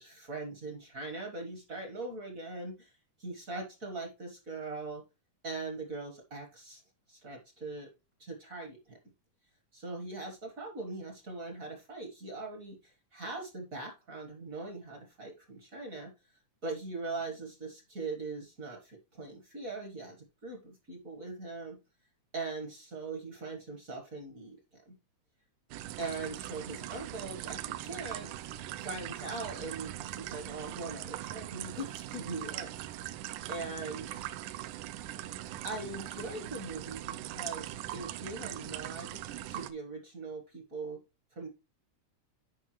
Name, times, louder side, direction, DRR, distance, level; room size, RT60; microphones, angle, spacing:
voice 1, 0.0-2.9 3.2-5.0 5.4-6.8 7.1-7.9 8.2-9.0 9.7-16.1 16.6-21.8 22.3-25.0 26.0-32.7 33.5-34.3 35.6-39.2 39.5-41.0 41.3-41.5, right 3 dB, 45° right, 2 dB, 1.1 m, -41 dB
sound 1, 25.7-39.7, right 13 dB, 85° right, 2.1 m, -41 dB
9.9 x 5.2 x 3.1 m, 0.27 s
omnidirectional pair, 3.6 m